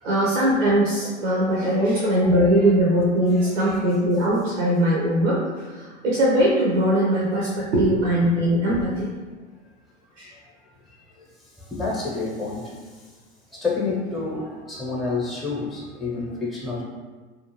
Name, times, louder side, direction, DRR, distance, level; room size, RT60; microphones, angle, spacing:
voice 1, 0.0-9.1 10.2-10.3, equal, 85° right, -5 dB, 0.7 m, -21 dB
voice 2, 3.3-3.8 11.2-11.3 11.6-12.8 13.5-16.8, left 3 dB, ahead, -4 dB, 0.6 m, -29 dB
2.5 x 2.3 x 2.9 m, 1.3 s
hypercardioid pair, 90°, 36 cm